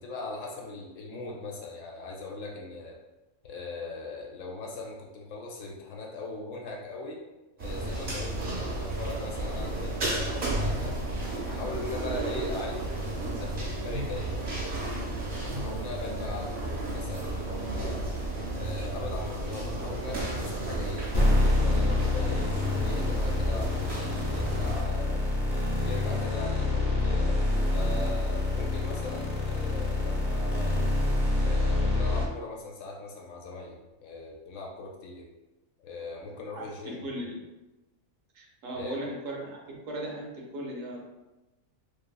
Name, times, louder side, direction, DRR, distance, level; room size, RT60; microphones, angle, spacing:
voice 1, 0.0-2.9 3.4-7.2 7.6-11.0 11.3-14.9 15.4-18.1 18.6-21.1 21.5-22.5 22.8-25.2 25.8-27.5 27.7-30.8 31.4-35.3 35.8-37.1 38.7-39.0, left 3 dB, 70° left, -1 dB, 0.9 m, -40 dB
sound 1, 7.6-24.8, right 1 dB, 50° right, 0.7 m, -33 dB
sound 2, 21.1-32.2, left 2 dB, 35° left, 0.6 m, -26 dB
voice 2, 36.5-37.4 38.3-41.0, right 1 dB, 70° right, -1 dB, 1.0 m, -37 dB
2.9 x 2.6 x 2.2 m, 1.1 s
omnidirectional pair, 1.5 m